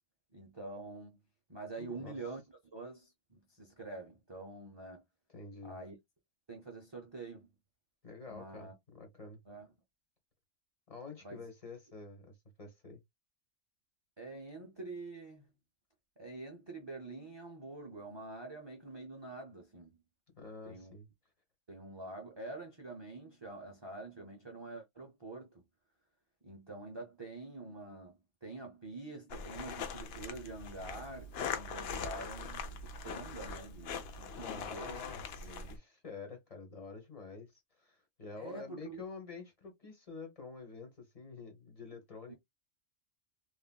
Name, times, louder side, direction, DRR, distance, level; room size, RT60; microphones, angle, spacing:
voice 1, 0.3-1.2 1.5-2.4 2.7-5.0 5.6-6.0 6.5-7.5 8.3-8.7 9.5-9.7 11.2-11.4 14.2-15.5 16.2-20.0 20.6-20.9 21.7-25.6 26.4-35.0 35.4-35.7 38.4-39.0 42.3-42.4, right 2 dB, 30° right, 0.5 m, -46 dB
voice 2, 1.8-2.1 5.3-5.8 8.0-9.4 10.9-13.0 20.3-21.1 34.4-42.3, left 4 dB, 30° left, 1.2 m, -48 dB
sound 1, 29.3-35.8, left 5 dB, 65° left, 0.7 m, -42 dB
3.1 x 2.5 x 2.2 m
omnidirectional pair, 1.3 m